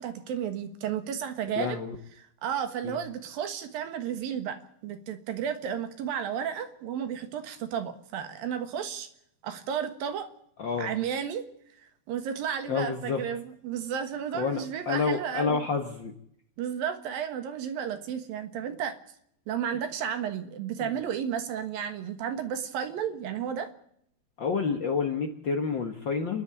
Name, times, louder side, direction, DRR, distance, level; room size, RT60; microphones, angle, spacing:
voice 1, 0.0-1.8 2.4-4.6 4.8-9.1 9.4-10.3 10.8-11.5 11.8-15.6 16.6-19.0 19.5-23.7, right 8 dB, 70° right, 8 dB, 3.2 m, -33 dB
voice 2, 1.6-2.0 2.8-3.0 10.6-10.9 12.7-13.2 14.3-16.1 20.8-20.9 24.4-26.4, left 5 dB, 85° left, 4 dB, 1.0 m, -29 dB
29.0 x 10.5 x 8.8 m, 0.71 s
omnidirectional pair, 4.3 m